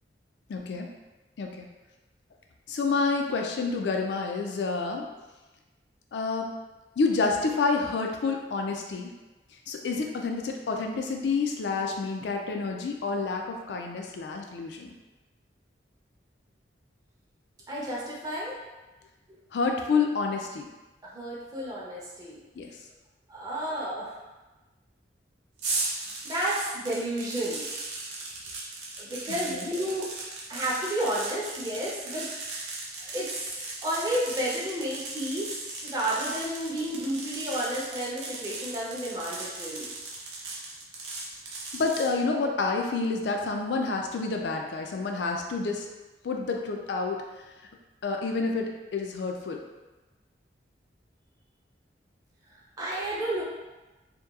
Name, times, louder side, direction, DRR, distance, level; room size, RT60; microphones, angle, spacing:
voice 1, 0.5-0.9 1.4-1.7 2.7-5.1 6.1-6.5 7.0-9.1 9.7-14.9 19.5-20.7 22.6-22.7 29.3-29.7 41.7-45.9 46.2-47.2 48.0-49.6, left 4 dB, 70° left, 2 dB, 0.3 m, -29 dB
voice 2, 17.7-18.5 21.0-22.4 23.3-24.2 26.2-27.7 29.0-30.1 30.5-32.3 33.0-33.6 33.8-39.9 52.8-53.4, right 1 dB, 20° right, -6 dB, 0.5 m, -31 dB
sound 1, 25.6-42.1, right 3 dB, 80° right, 0.6 m, -37 dB
2.9 x 2.2 x 2.3 m, 1.1 s
head